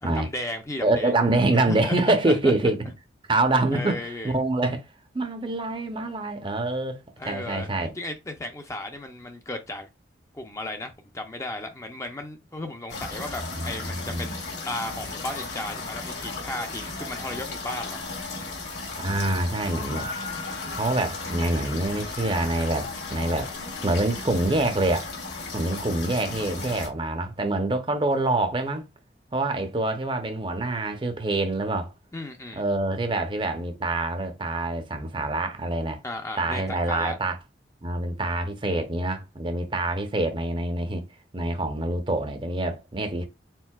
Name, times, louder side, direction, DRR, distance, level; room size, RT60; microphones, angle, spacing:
voice 1, 0.0-1.1 1.6-2.5 3.7-4.4 7.2-9.9 10.3-18.0 32.1-32.7 36.0-37.2, left 1 dB, 15° left, 0.5 m, -35 dB
voice 2, 0.8-2.8 3.3-4.8 5.1-7.9 13.5-14.4 19.0-20.1 20.4-23.5 23.8-25.1 25.5-28.8 29.3-31.9 32.5-36.0 36.4-37.4 37.8-41.0 41.3-43.2, right 2 dB, 25° right, 0.6 m, -26 dB
sound 1, 12.9-26.9, left 3 dB, 65° left, 2.0 m, -35 dB
4.5 x 4.0 x 2.3 m
head